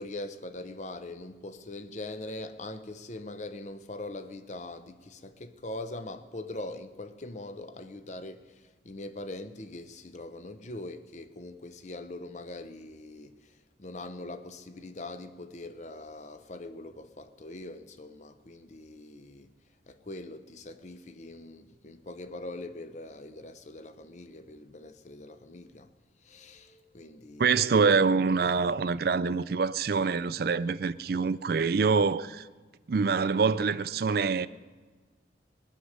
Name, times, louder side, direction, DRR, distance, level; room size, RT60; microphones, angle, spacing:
voice 1, 0.0-19.5 19.9-25.9 26.2-28.0, left 2 dB, 40° left, 0.7 m, -42 dB
voice 2, 27.4-32.5 32.9-34.5, right 5 dB, 55° right, 0.4 m, -25 dB
19.0 x 6.6 x 9.6 m
head